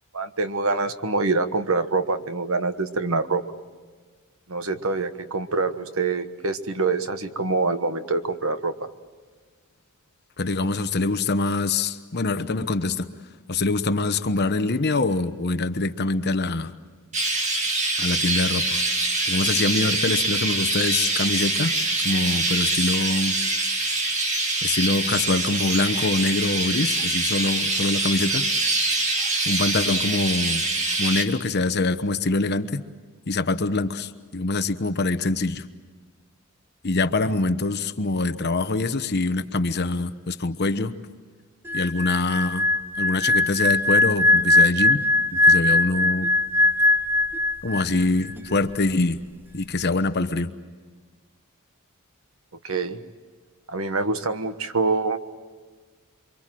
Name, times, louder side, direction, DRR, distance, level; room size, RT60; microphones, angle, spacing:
voice 1, 0.1-3.4 4.5-8.9 52.6-53.0 53.7-55.2, right 3 dB, 65° right, 10 dB, 1.3 m, -25 dB
voice 2, 10.4-13.1 13.5-16.7 18.0-18.8 19.3-21.8 22.0-23.4 24.6-28.5 29.5-30.6 31.0-32.8 33.3-35.6 36.8-41.0 41.7-42.7 43.0-45.0 45.3-46.3 47.6-49.2 49.5-50.5, left 3 dB, 50° left, 10 dB, 1.1 m, -24 dB
Chirp tweet, 17.1-31.2, right 2 dB, 35° right, 2.2 m, -24 dB
sound 1, 41.7-48.0 48.3-48.6, left 2 dB, 10° right, 0.8 m, -20 dB
28.0 x 24.0 x 7.7 m, 1.5 s
head